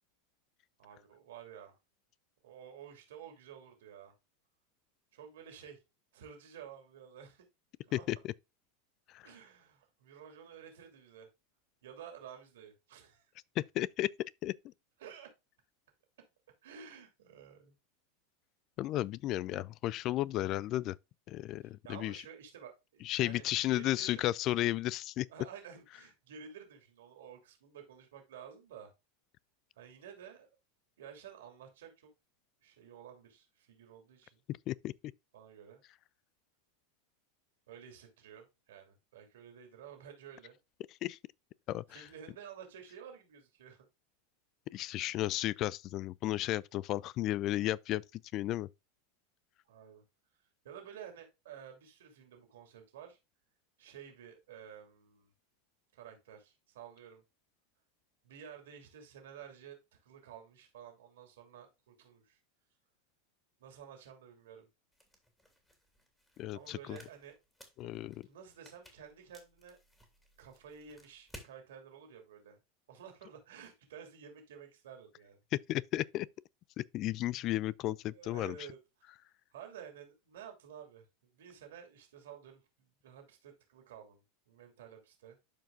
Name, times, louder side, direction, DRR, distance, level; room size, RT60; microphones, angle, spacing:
voice 1, 0.8-1.8 2.4-4.1 5.1-5.8 6.1-7.4 7.9-8.1 9.2-11.3 11.8-13.3 15.0-15.3 16.6-17.8 21.6-24.2 25.3-28.9 29.7-30.6 31.0-32.1 32.6-34.4 35.3-35.8 37.7-40.6 41.9-43.9 44.8-44.9 49.6-50.0 50.6-53.2 53.8-55.3 55.9-57.2 58.2-62.4 63.6-64.7 66.5-67.3 67.8-69.8 70.4-72.6 72.9-75.4 78.1-79.1 79.5-85.4, right 8 dB, 70° right, 2.9 m, -52 dB
voice 2, 13.6-14.1 14.4-14.5 18.8-21.0 21.3-22.2 23.1-25.3 34.7-34.9 41.0-41.2 41.7-42.0 44.7-48.0 48.3-48.7 66.4-67.0 67.8-68.2 75.7-76.3 76.8-78.5, left 15 dB, 45° left, 0.3 m, -33 dB
sound 1, 64.9-71.6, left 1 dB, 10° left, 2.6 m, -58 dB
12.0 x 4.7 x 2.5 m
hypercardioid pair, 90°, 0 cm